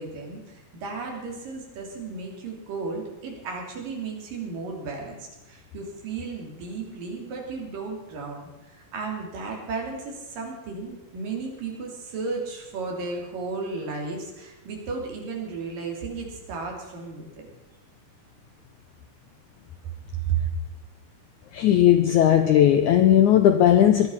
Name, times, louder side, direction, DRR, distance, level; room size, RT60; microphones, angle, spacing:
voice 1, 0.0-17.5 20.2-20.4, right 4 dB, 60° right, 0 dB, 4.7 m, -34 dB
voice 2, 21.5-24.1, left 10 dB, 90° left, 7 dB, 1.7 m, -17 dB
19.5 x 12.0 x 5.7 m, 1.0 s
omnidirectional pair, 4.5 m